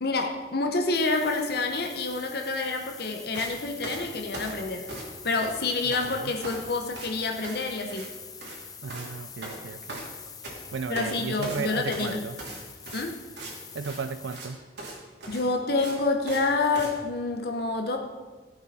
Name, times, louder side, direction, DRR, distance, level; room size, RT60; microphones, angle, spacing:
voice 1, 0.0-4.8 5.2-8.1 10.9-12.2 12.9-13.2 15.3-18.0, left 3 dB, 60° left, 3 dB, 0.9 m, -28 dB
sound 1, 0.9-14.4, left 6 dB, 20° left, 0.9 m, -45 dB
sound 2, 3.3-3.5 3.8-5.1 5.4-6.1 6.4-6.7 6.9-7.1 7.4-7.6 7.9-8.1 8.3-8.6 8.9-9.1 9.4-10.6 10.9-11.1 11.4-13.5 13.8-14.0 14.3-14.5 14.8-15.0 15.2-16.5 16.7-16.9, right 2 dB, 70° right, 3.0 m, -39 dB
voice 2, 5.8-6.3 8.8-10.0 10.7-12.4 13.7-14.6, right 5 dB, 85° right, 11 dB, 0.4 m, -35 dB
16.0 x 8.2 x 4.3 m, 1.4 s
head